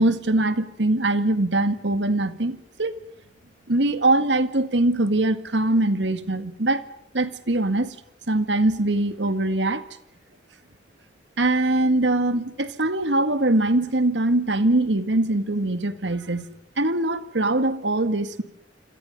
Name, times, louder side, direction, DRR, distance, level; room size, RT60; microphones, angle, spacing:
voice 1, 0.0-2.9 3.7-6.8 7.1-7.9 8.3-9.8 11.4-16.5 16.8-18.4, right 2 dB, 90° right, 11 dB, 2.0 m, -22 dB
28.0 x 27.0 x 5.4 m, 0.71 s
head